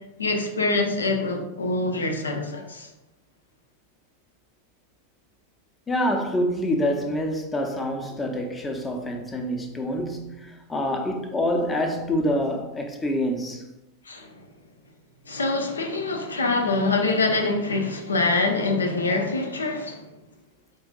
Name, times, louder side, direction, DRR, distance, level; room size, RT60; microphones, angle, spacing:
voice 1, 0.2-2.9 14.1-14.3 15.3-20.1, left 3 dB, 75° left, 0.6 m, -25 dB
voice 2, 5.9-13.6, left 1 dB, 15° left, 0.6 m, -26 dB
4.6 x 2.5 x 3.7 m
figure-of-eight pair, 90°, 0 cm